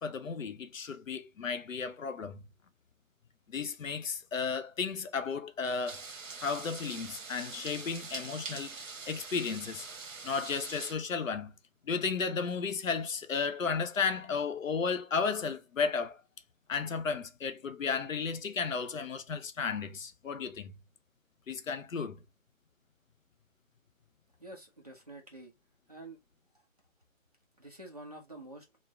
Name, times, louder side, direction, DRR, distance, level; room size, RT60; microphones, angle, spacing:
voice 1, 0.0-2.5 3.5-6.0 6.4-9.9 10.2-11.5 11.9-16.2 16.7-20.7 21.5-22.2, left 5 dB, 70° left, 0.7 m, -34 dB
sound 1, 5.9-10.9, right 4 dB, 70° right, 1.0 m, -44 dB
voice 2, 24.4-25.5 25.9-26.2 26.5-26.6 27.6-28.7, right 2 dB, 30° right, 0.7 m, -48 dB
3.1 x 2.1 x 3.4 m
hypercardioid pair, 170°, 41 cm